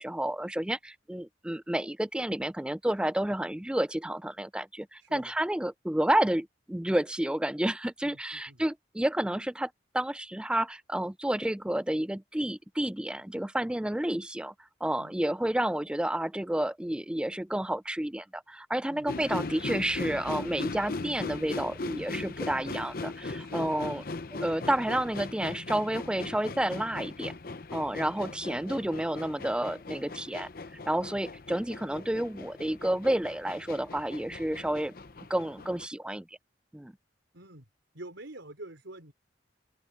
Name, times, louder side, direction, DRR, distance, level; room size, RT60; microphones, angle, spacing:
voice 1, 0.0-14.5 14.8-24.0 24.3-27.3 27.7-30.5 30.9-34.9 35.3-36.2 36.7-36.9, right 1 dB, 5° right, 0.3 m, -30 dB
voice 2, 5.0-5.3 8.0-8.6 15.0-15.1 18.9-19.1 23.4-23.8 28.0-28.1 31.0-31.2 37.3-37.7 37.9-39.1, right 1 dB, 90° right, 4.3 m, -47 dB
sound 1, 19.1-35.9, left 3 dB, 50° left, 0.8 m, -39 dB
open air
head